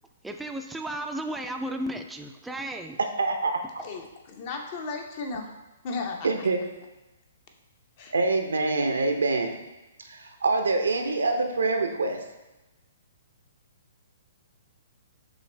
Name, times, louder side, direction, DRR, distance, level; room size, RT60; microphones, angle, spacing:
voice 1, 0.2-3.0, right 1 dB, 5° right, 4 dB, 0.3 m, -34 dB
voice 2, 3.2-3.6 6.2-6.6 8.1-9.6 10.1-12.2, right 3 dB, 85° right, 5 dB, 0.6 m, -25 dB
voice 3, 3.8-5.5 5.8-6.5 8.0-8.1, left 3 dB, 45° left, 3 dB, 0.7 m, -35 dB
6.3 x 2.6 x 3.3 m, 1.0 s
hypercardioid pair, 130°, 0 cm